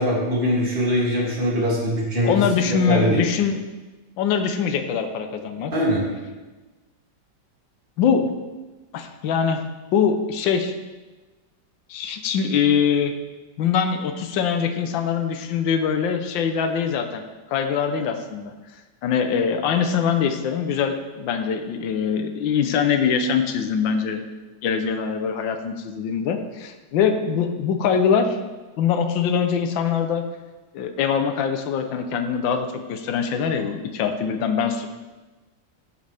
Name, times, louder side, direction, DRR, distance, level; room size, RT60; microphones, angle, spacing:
voice 1, 0.0-2.3 2.9-3.2 5.7-6.0, equal, 25° right, -5 dB, 2.8 m, -22 dB
voice 2, 2.2-3.6 4.2-5.7 8.0-8.3 8.9-9.6 9.9-10.7 11.9-13.1 13.6-17.2 17.5-18.5 19.0-24.2 24.6-28.4 28.8-30.2 30.7-34.9, left 7 dB, 85° left, 7 dB, 1.5 m, -23 dB
14.5 x 7.8 x 3.4 m, 1.2 s
omnidirectional pair, 2.0 m